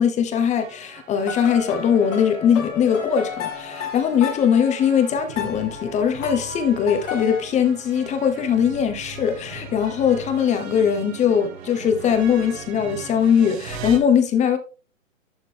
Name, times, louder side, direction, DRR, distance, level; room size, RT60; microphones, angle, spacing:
voice 1, 0.0-14.6, left 8 dB, 15° left, 1.1 m, -21 dB
sound 1, 0.6-14.0, right 5 dB, 50° right, 2.1 m, -40 dB
sound 2, 1.2-7.4, left 8 dB, 65° left, 2.1 m, -33 dB
11.5 x 4.3 x 3.5 m
hypercardioid pair, 120°, 40 cm